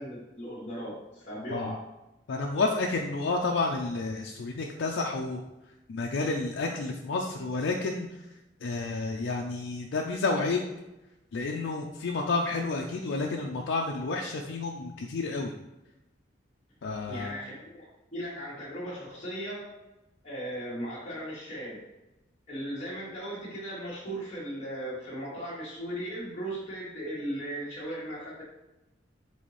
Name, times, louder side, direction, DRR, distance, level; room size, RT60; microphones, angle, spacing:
voice 1, 0.0-1.9 17.0-19.7 20.2-21.8 22.5-28.4, right 1 dB, 35° left, -9 dB, 1.1 m, -37 dB
voice 2, 2.3-5.4 5.9-8.1 8.6-10.6 11.3-15.5 16.8-17.4, left 3 dB, 80° left, 1 dB, 0.4 m, -30 dB
4.1 x 3.8 x 3.1 m, 0.97 s
head